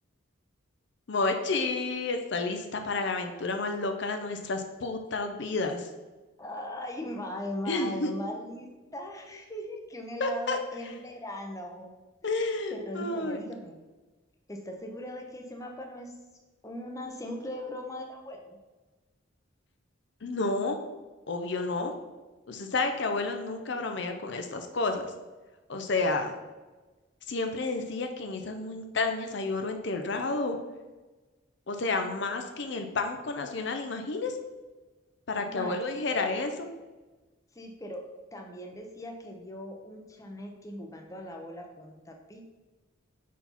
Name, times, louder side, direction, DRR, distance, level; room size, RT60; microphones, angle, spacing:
voice 1, 1.1-5.9 7.7-8.1 10.2-10.6 12.2-13.4 20.2-20.8 21.3-21.9 22.5-25.0 25.7-26.3 27.3-30.6 31.7-34.4 35.3-36.7, left 3 dB, 60° left, 5 dB, 0.6 m, -30 dB
voice 2, 6.4-11.9 12.2-12.3 12.7-13.8 14.5-16.1 16.6-18.6 35.5-36.4 37.5-38.0 38.3-42.4, left 1 dB, 15° left, 2 dB, 0.7 m, -39 dB
4.6 x 4.2 x 5.5 m, 1.2 s
head